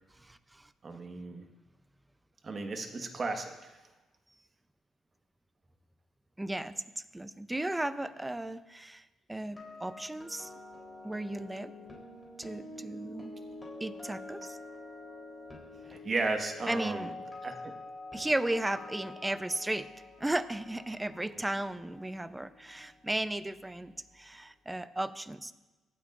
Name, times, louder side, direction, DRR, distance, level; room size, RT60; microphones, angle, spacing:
voice 1, 0.2-0.6 6.4-9.0 9.3-10.5 11.0-11.7 12.4-13.3 13.8-14.6 16.7-17.1 18.1-19.9 20.2-25.5, right 1 dB, 10° right, 13 dB, 0.6 m, -35 dB
voice 2, 0.8-1.4 2.4-3.8 15.9-17.1 17.4-17.6 21.3-21.4, right 3 dB, 40° right, 4 dB, 1.4 m, -35 dB
sound 1, 9.3-23.4 23.7-24.0, left 2 dB, 15° left, 3.6 m, -47 dB
24.0 x 8.5 x 2.5 m, 1.1 s
cardioid pair, 90°, 0 cm